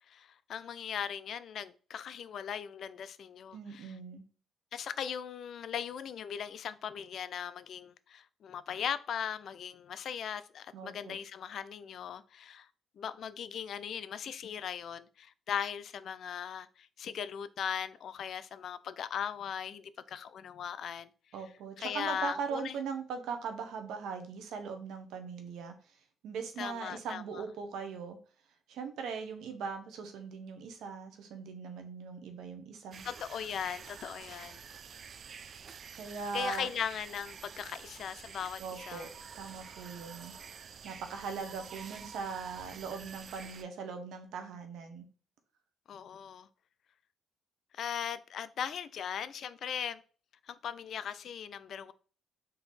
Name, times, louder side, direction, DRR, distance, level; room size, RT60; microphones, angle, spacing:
voice 1, 0.0-3.9 4.7-12.7 13.0-21.1 21.8-22.8 26.6-27.4 33.0-34.6 36.3-38.6 38.9-39.1 45.9-46.5 47.7-50.0 50.5-51.9, left 8 dB, 65° left, 0.3 m, -39 dB
voice 2, 3.5-4.2 10.7-11.2 21.3-25.7 26.2-28.2 28.7-33.0 35.9-36.7 38.6-39.1 39.3-40.3 40.8-45.0, right 5 dB, 80° right, 0.8 m, -40 dB
sound 1, 32.9-43.6, right 6 dB, 55° right, 0.3 m, -48 dB
3.8 x 2.8 x 4.0 m
cardioid pair, 90°, 0 cm